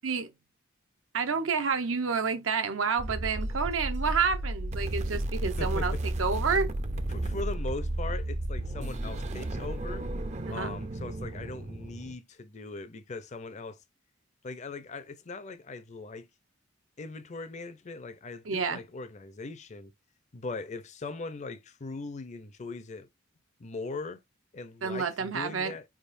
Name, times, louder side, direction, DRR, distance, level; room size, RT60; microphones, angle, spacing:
voice 1, 1.1-5.9 6.2-6.7 10.5-10.8 18.5-18.8 24.8-25.7, right 5 dB, 80° right, 0.8 m, -29 dB
sound 1, 3.0-12.1, right 1 dB, 35° right, 0.5 m, -33 dB
voice 2, 5.6-6.0 7.1-10.0 10.5-13.8 14.4-16.3 17.0-19.9 20.3-23.1 23.6-24.2 24.5-25.8, left 3 dB, 35° left, 0.5 m, -40 dB
4.7 x 3.5 x 2.5 m
head